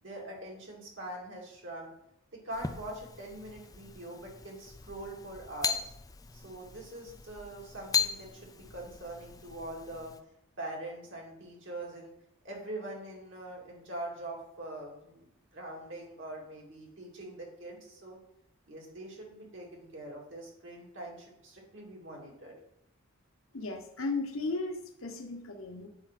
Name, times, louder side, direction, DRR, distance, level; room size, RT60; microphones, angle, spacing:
voice 1, 0.0-1.9 2.3-5.9 6.3-10.1 10.6-12.1 12.4-15.3 15.5-18.2 18.7-22.6, right 1 dB, 60° right, -2 dB, 2.4 m, -43 dB
sound 1, 2.5-10.2, left 7 dB, 15° left, 0.4 m, -38 dB
voice 2, 23.5-25.9, left 3 dB, 75° left, 4 dB, 1.2 m, -35 dB
8.7 x 4.6 x 5.9 m, 0.80 s
head